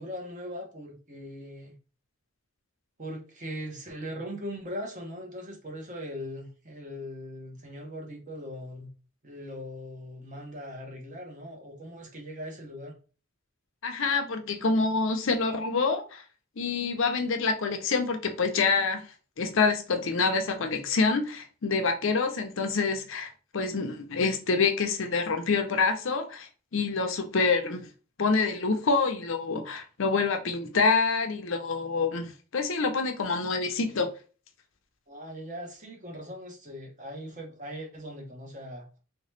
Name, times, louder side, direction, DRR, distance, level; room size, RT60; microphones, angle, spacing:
voice 1, 0.0-1.7 3.0-8.9 9.2-12.9 35.1-39.0, equal, 35° right, 0.9 m, -40 dB
voice 2, 13.8-16.2 16.6-19.0 19.4-27.9 28.2-34.1, left 4 dB, 60° left, 0.6 m, -27 dB
3.3 x 2.9 x 3.2 m
head